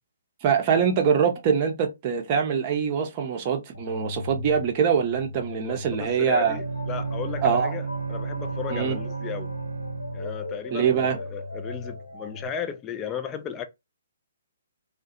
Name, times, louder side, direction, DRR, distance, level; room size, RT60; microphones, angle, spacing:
voice 1, 0.4-6.6 7.4-7.7 8.7-9.0 10.7-11.2, right 7 dB, 35° right, 0.6 m, -23 dB
sound 1, 3.7-12.5, left 3 dB, 80° left, 0.8 m, -37 dB
voice 2, 5.5-9.5 10.1-13.7, left 8 dB, 20° left, 0.4 m, -35 dB
Bowed string instrument, 6.3-10.4, right 5 dB, 70° right, 0.3 m, -33 dB
2.3 x 2.1 x 2.7 m
figure-of-eight pair, 130°, 0 cm